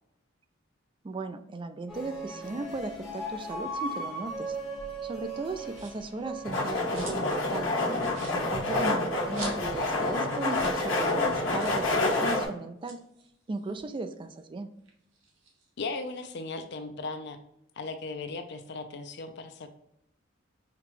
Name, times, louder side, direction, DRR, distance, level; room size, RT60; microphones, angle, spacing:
voice 1, 1.0-4.6 5.0-7.8 8.3-13.0 13.5-14.7, right 3 dB, 25° right, 9 dB, 0.3 m, -37 dB
sound 1, 1.9-7.2, right 1 dB, ahead, 0.9 m, -38 dB
sound 2, 5.7-6.1 6.5-7.4 7.7-7.8 8.1-9.9 10.2-10.3 10.5-10.8 11.1-11.2 11.6-11.9 12.6-14.4 14.8-16.3, right 4 dB, 75° right, 1.1 m, -47 dB
sound 3, 6.4-12.5, left 2 dB, 80° left, 1.3 m, -28 dB
voice 2, 8.2-8.5 15.8-17.4 17.8-19.7, left 3 dB, 60° left, 8 dB, 0.5 m, -37 dB
5.8 x 2.3 x 3.0 m, 0.77 s
head